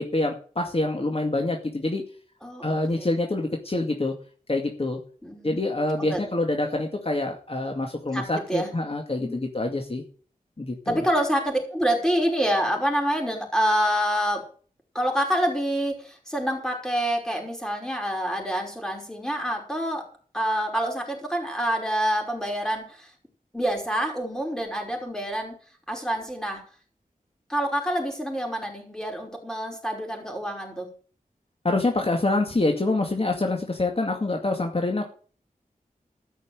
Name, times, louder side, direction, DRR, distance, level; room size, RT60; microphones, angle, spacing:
voice 1, 0.0-2.0 2.6-4.1 4.5-5.0 5.4-10.0 10.6-11.0 31.6-35.0, left 2 dB, 40° left, 2 dB, 2.2 m, -26 dB
voice 2, 2.4-3.1 5.2-5.6 6.0-6.2 8.1-8.7 9.1-9.4 10.9-14.5 14.9-20.1 20.3-23.1 23.5-25.5 25.9-26.6 27.5-30.9, equal, 5° left, 1 dB, 5.4 m, -27 dB
14.0 x 6.3 x 7.9 m, 0.42 s
wide cardioid pair, 60°, 15 cm